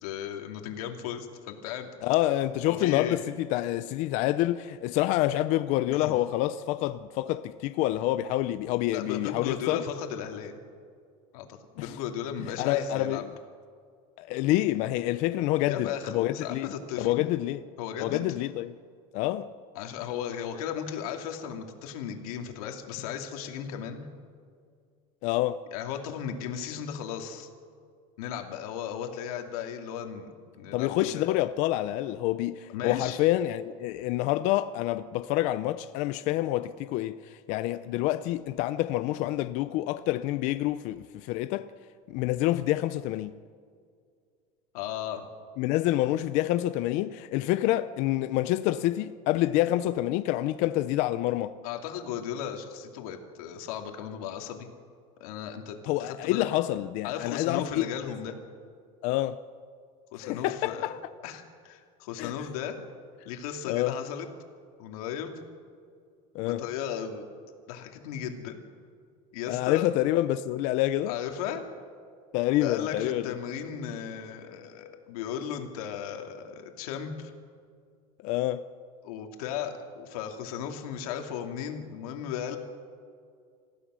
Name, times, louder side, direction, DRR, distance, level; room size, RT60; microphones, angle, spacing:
voice 1, 0.0-1.9 2.7-3.2 5.9-6.2 8.9-10.5 11.3-13.2 15.7-17.1 17.8-18.3 19.7-24.0 25.7-27.5 28.2-30.3 30.5-31.3 32.7-33.2 44.7-45.2 51.6-54.7 55.2-56.5 57.0-58.4 60.1-60.9 61.2-62.8 63.2-64.3 64.8-65.4 66.4-67.3 67.7-68.6 69.3-69.9 71.1-71.6 72.6-77.3 79.0-82.6, left 8 dB, 90° left, 2.6 m, -36 dB
voice 2, 2.0-9.8 11.8-11.9 12.6-13.3 14.2-16.7 17.0-17.6 18.0-18.7 19.1-19.5 25.2-25.6 30.7-41.7 42.1-43.3 45.6-51.5 55.8-57.9 59.0-59.4 60.2-61.0 62.2-62.3 63.7-64.0 66.3-66.6 69.5-71.2 72.3-73.3 78.2-78.6, left 15 dB, 40° left, 0.5 m, -27 dB
27.0 x 15.5 x 6.3 m
cardioid pair, 180°, 18 cm